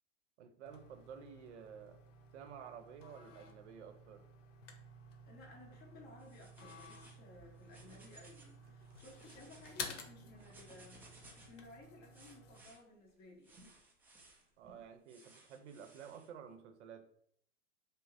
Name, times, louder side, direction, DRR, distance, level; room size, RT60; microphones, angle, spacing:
voice 1, 0.4-2.0 2.3-4.2 14.6-17.1, right 7 dB, 65° right, 8 dB, 0.7 m, -52 dB
sound 1, 0.6-12.6, left 3 dB, 70° left, 0.8 m, -52 dB
voice 2, 5.2-13.6, left 2 dB, 25° left, -1 dB, 1.1 m, -57 dB
sound 2, 5.3-5.4 5.7-15.0, right 1 dB, 25° right, 0.7 m, -68 dB
sound 3, 6.2-7.2 7.6-8.5 8.9-9.7 10.4-11.6 12.1-12.8 13.4-14.4 15.1-16.3, right 2 dB, 5° right, 0.4 m, -61 dB
5.2 x 2.1 x 2.6 m, 0.68 s
hypercardioid pair, 120°, 38 cm